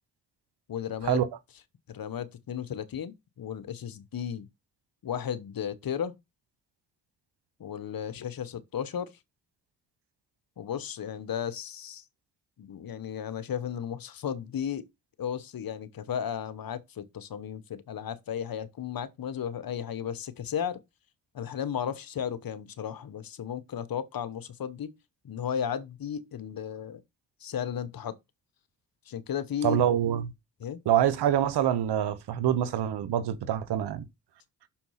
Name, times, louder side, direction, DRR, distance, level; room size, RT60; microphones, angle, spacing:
voice 1, 0.7-1.2 1.9-4.5 5.0-6.1 7.6-9.1 10.6-12.0 12.6-14.9 15.2-20.8 21.3-24.9 25.2-27.0 27.4-28.2 29.1-29.8 30.6-30.8, left 8 dB, 60° left, 1.0 m, -34 dB
voice 2, 29.6-30.2 30.9-34.1, right 10 dB, 80° right, 0.9 m, -25 dB
6.4 x 4.3 x 5.7 m
supercardioid pair, 55°, 39 cm